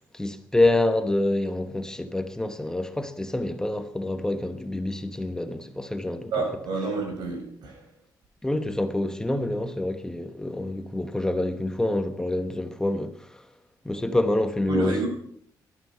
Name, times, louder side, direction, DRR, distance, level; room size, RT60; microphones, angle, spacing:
voice 1, 0.1-6.3 8.4-13.4 13.8-15.0, left 1 dB, 10° left, 1.1 m, -27 dB
voice 2, 6.3-7.8 14.7-15.1, right 3 dB, 85° right, 6.9 m, -29 dB
19.5 x 12.0 x 5.7 m
cardioid pair, 135°, 7 cm